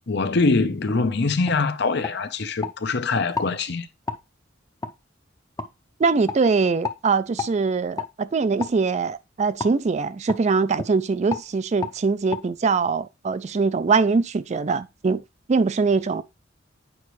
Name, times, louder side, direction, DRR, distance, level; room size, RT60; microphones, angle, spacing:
voice 1, 0.1-3.9, left 3 dB, 60° left, 0.7 m, -23 dB
sound 1, 0.9-1.0 1.5-1.6 2.0-2.8 3.3-3.5 4.1-4.2 4.8-4.9 5.6-5.7 6.3-6.4 6.8-7.0 7.4-7.5 8.0-8.1 8.6-8.8 9.6-9.8 10.3-10.4 10.7-10.9 11.3-11.5 11.8-12.0 12.3-12.4, left 4 dB, 20° left, 0.6 m, -31 dB
voice 2, 6.0-15.2 15.5-16.2, right 4 dB, 35° right, 0.4 m, -22 dB
8.5 x 5.1 x 3.1 m
head